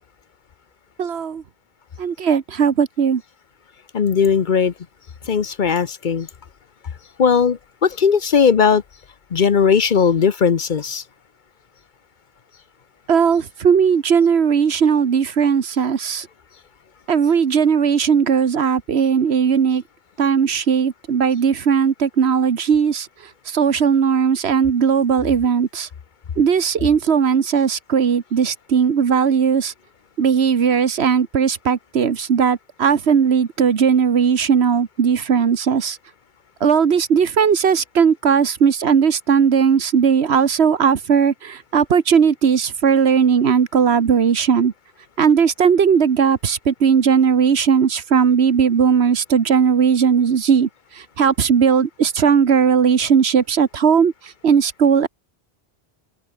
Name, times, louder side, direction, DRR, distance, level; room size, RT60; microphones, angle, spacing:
voice 1, 1.0-1.4 2.0-3.2 13.1-16.3 17.1-19.8 20.2-23.1 23.5-25.9 26.4-29.7 30.2-36.0 36.6-44.7 45.2-50.7 51.2-54.1 54.4-55.1, right 7 dB, 80° right, 1.4 m, -17 dB
voice 2, 3.9-4.7 5.3-6.3 7.2-8.8 9.3-11.0, left 6 dB, 50° left, 0.9 m, -17 dB
open air
omnidirectional pair, 1.1 m